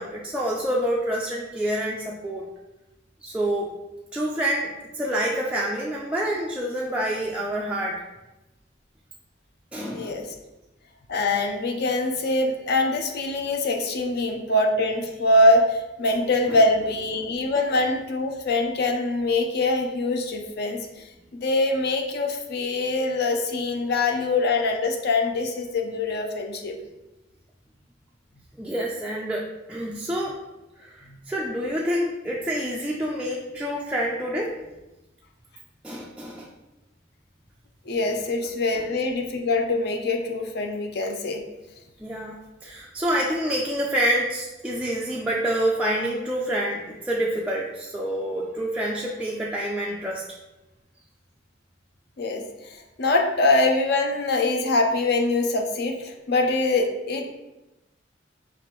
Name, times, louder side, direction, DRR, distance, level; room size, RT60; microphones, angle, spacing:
voice 1, 0.0-2.5 3.2-3.7 4.1-8.0 9.7-10.1 16.5-16.7 17.1-17.2 17.6-17.7 28.6-30.4 30.8-34.5 35.8-36.5 38.1-38.2 38.7-38.9 42.0-42.4 42.6-50.2, right 1 dB, 5° right, -4 dB, 0.3 m, -27 dB
voice 2, 9.9-10.3 11.1-26.8 31.1-31.2 37.9-41.4 52.2-57.2, left 2 dB, 60° left, 4 dB, 0.5 m, -24 dB
5.0 x 2.5 x 3.1 m, 1.0 s
head